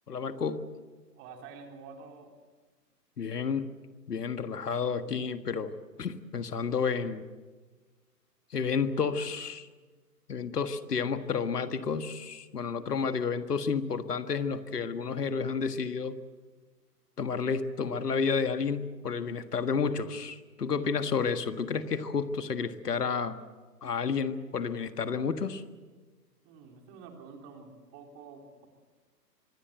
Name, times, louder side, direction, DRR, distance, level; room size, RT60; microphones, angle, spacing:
voice 1, 0.1-0.6 3.2-3.7 4.1-5.7 6.0-7.3 8.5-9.7 10.3-16.2 17.2-23.4 23.8-25.6, left 5 dB, 70° left, 9 dB, 1.7 m, -31 dB
voice 2, 1.2-2.3 26.4-28.7, right 5 dB, 25° right, 3 dB, 3.8 m, -48 dB
25.0 x 20.0 x 8.1 m, 1.3 s
figure-of-eight pair, 130°, 49 cm